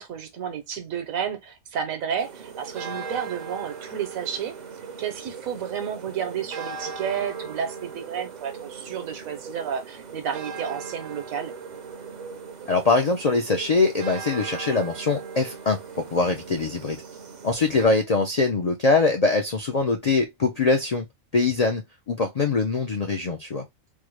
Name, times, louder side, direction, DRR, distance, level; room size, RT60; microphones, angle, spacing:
voice 1, 0.0-4.5 5.0-11.5, right 8 dB, 80° right, 1.2 m, -31 dB
sound 1, 2.2-17.9, right 5 dB, 50° right, 0.5 m, -38 dB
voice 2, 12.7-17.0 17.4-21.1 21.3-23.7, left 3 dB, 70° left, 0.3 m, -23 dB
3.6 x 2.1 x 3.0 m
omnidirectional pair, 1.4 m